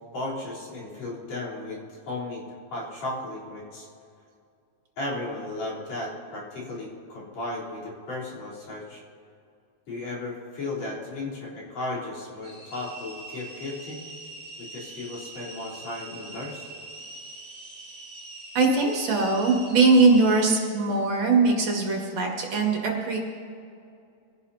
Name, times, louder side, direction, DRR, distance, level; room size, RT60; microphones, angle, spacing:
voice 1, 0.1-1.8 2.1-2.4 2.7-3.9 5.0-9.0 9.9-14.1 14.6-16.7, left 2 dB, 65° left, -6 dB, 5.1 m, -35 dB
sound 1, 12.4-20.4, right 2 dB, 25° right, 2.8 m, -43 dB
voice 2, 18.5-23.2, right 3 dB, 60° right, -1 dB, 3.2 m, -21 dB
25.0 x 17.0 x 2.8 m, 2.5 s
omnidirectional pair, 3.4 m